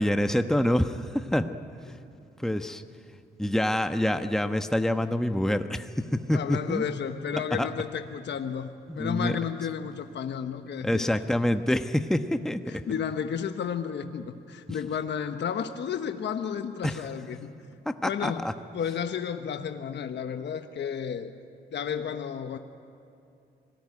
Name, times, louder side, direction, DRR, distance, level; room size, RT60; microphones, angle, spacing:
voice 1, 0.0-1.5 2.4-2.8 3.4-6.8 7.5-7.7 8.9-9.4 10.8-12.8 16.8-17.0 17.8-18.5, left 1 dB, ahead, 8 dB, 1.2 m, -26 dB
voice 2, 6.3-8.7 8.9-11.1 12.7-17.5 18.0-18.5 18.7-21.3 21.7-22.6, left 7 dB, 65° left, 7 dB, 1.2 m, -32 dB
26.0 x 18.5 x 9.7 m, 2.6 s
supercardioid pair, 55°, 19 cm